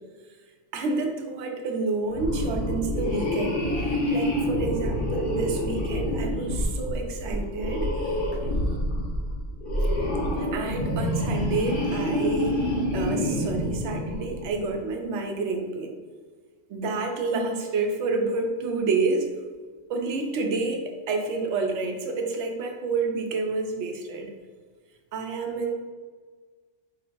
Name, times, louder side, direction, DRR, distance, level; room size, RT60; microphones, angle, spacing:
voice 1, 0.7-3.6 4.1-7.9 8.3-8.4 9.8-9.9 10.4-12.6 12.9-15.9 16.7-19.3 19.9-24.3 25.1-25.8, right 3 dB, 80° right, 3 dB, 0.9 m, -29 dB
sound 1, 2.1-14.6, left 1 dB, 55° left, 0.9 m, -27 dB
4.8 x 3.0 x 2.5 m, 1.5 s
omnidirectional pair, 1.2 m